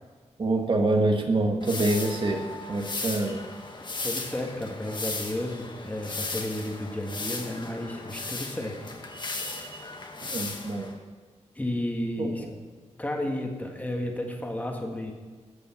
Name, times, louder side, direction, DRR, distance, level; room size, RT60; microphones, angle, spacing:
voice 1, 0.4-2.4 2.7-3.4 10.3-10.9 12.2-12.5, right 2 dB, 45° right, 2 dB, 1.6 m, -26 dB
sound 1, 1.6-11.0, left 3 dB, 40° left, 1.3 m, -36 dB
voice 2, 3.8-8.9 11.5-12.4 13.0-15.1, left 1 dB, 15° left, 2 dB, 1.7 m, -32 dB
14.5 x 5.5 x 7.1 m, 1.4 s
wide cardioid pair, 105°, 12 cm